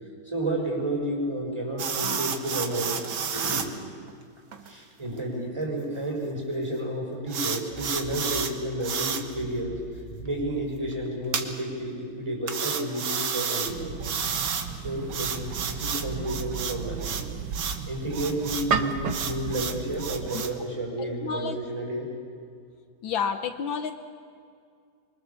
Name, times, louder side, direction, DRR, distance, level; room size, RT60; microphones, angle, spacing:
voice 1, 0.2-3.0 3.3-3.7 4.6-9.8 10.2-14.0 14.8-17.3 17.9-22.1, right 1 dB, 10° right, -1 dB, 5.7 m, -31 dB
sound 1, 1.8-3.7 4.1-4.2 4.5-4.7 5.2-5.3 7.3-8.5 8.8-9.2 11.3-11.5 12.5-13.7 14.0-14.7 15.1-17.2 17.5-17.8 18.1-18.7 19.1-20.5, right 6 dB, 70° right, 2.2 m, -31 dB
sound 2, 7.7-11.7, right 1 dB, 25° left, 3.5 m, -43 dB
sound 3, 13.7-20.4, right 5 dB, 55° right, 1.5 m, -33 dB
voice 2, 21.0-21.6 23.0-23.9, left 6 dB, 75° left, 8 dB, 1.7 m, -30 dB
25.0 x 24.5 x 7.0 m, 2.3 s
omnidirectional pair, 2.2 m